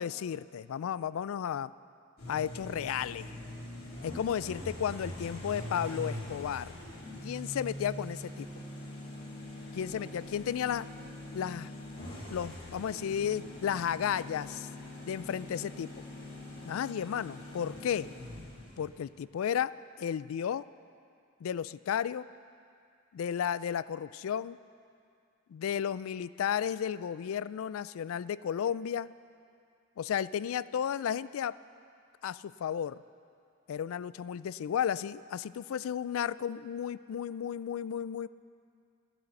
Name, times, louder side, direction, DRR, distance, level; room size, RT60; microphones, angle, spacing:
voice 1, 0.0-1.7 2.3-3.4 4.0-6.7 7.2-8.5 9.7-10.9 11.3-11.7 12.3-14.7 15.1-15.9 16.6-18.1 18.8-19.7 20.0-20.6 21.4-22.3 23.1-24.6 25.5-29.1 30.0-31.5 32.2-33.0 33.7-38.3, left 8 dB, 75° left, 18 dB, 0.3 m, -33 dB
sound 1, 2.2-19.0, left 1 dB, 50° left, 3.0 m, -43 dB
13.5 x 11.0 x 6.5 m, 2.4 s
head